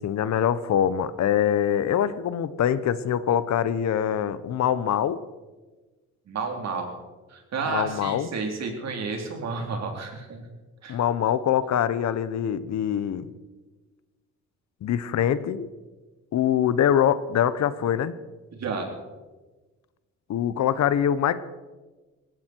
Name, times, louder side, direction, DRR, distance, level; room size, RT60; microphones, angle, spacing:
voice 1, 0.0-5.2 7.7-8.3 10.9-13.3 14.8-15.7 16.3-18.1 20.3-21.4, left 9 dB, 65° left, 15 dB, 1.0 m, -24 dB
voice 2, 6.3-6.9 7.3-10.4 10.8-11.0 18.5-18.9, right 4 dB, 60° right, 3 dB, 4.0 m, -31 dB
19.5 x 15.5 x 4.6 m, 1.2 s
cardioid pair, 90°, 30 cm